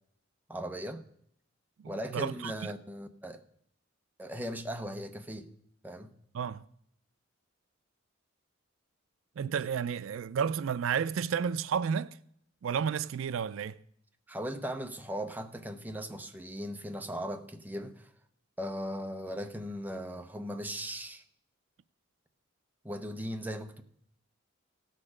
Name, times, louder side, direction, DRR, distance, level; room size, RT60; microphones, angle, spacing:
voice 1, 0.5-1.0 1.9-3.4 4.2-5.5 5.8-6.1 14.3-18.1 18.6-21.2 22.8-23.8, equal, 10° right, 0.8 m, -38 dB
voice 2, 1.8-2.5 6.3-6.6 9.4-12.2 12.6-13.8, right 7 dB, 80° right, 0.4 m, -31 dB
17.0 x 6.6 x 4.9 m
head